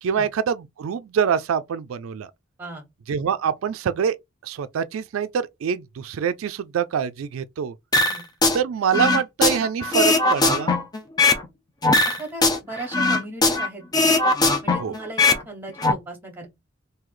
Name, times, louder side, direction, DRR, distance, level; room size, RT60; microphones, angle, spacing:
voice 1, 0.0-2.3 3.1-4.2 4.4-7.7 8.5-10.7 14.8-14.9, right 7 dB, 90° right, 0.4 m, -25 dB
sound 1, 7.9-8.6 8.9-11.5 11.8-13.7 13.9-15.4 15.7-15.9, left 3 dB, 20° left, 0.5 m, -19 dB
voice 2, 12.1-14.1 14.6-16.5, right 2 dB, 10° right, 1.2 m, -37 dB
3.1 x 2.7 x 3.7 m
head